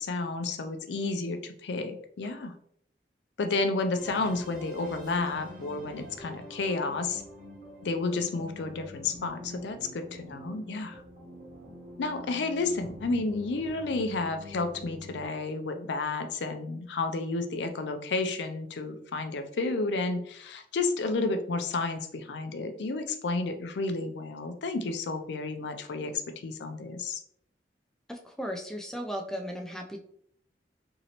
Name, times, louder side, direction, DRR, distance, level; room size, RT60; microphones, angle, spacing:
voice 1, 0.0-2.5 3.4-7.2 7.8-11.0 12.0-27.2, left 3 dB, 75° left, 8 dB, 0.4 m, -31 dB
sound 1, 4.0-15.3, left 1 dB, 45° right, 1.0 m, -46 dB
voice 2, 28.1-30.0, equal, 5° left, 2 dB, 0.3 m, -36 dB
3.0 x 2.7 x 2.8 m, 0.67 s
head